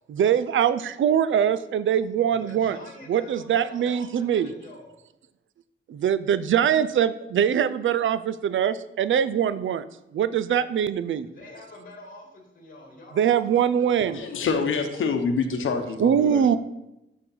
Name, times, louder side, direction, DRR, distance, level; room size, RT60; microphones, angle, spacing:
voice 1, 0.1-2.8 3.1-4.5 5.9-9.8 10.1-11.3 13.1-14.2 16.0-16.6, right 9 dB, 75° right, 14 dB, 0.5 m, -23 dB
voice 2, 2.3-4.9 11.2-13.7 13.9-14.5, left 1 dB, 45° left, 1 dB, 2.4 m, -46 dB
voice 3, 14.1-16.6, left 5 dB, 80° left, 6 dB, 0.9 m, -26 dB
6.9 x 6.5 x 5.6 m, 0.89 s
wide cardioid pair, 155°, 20 cm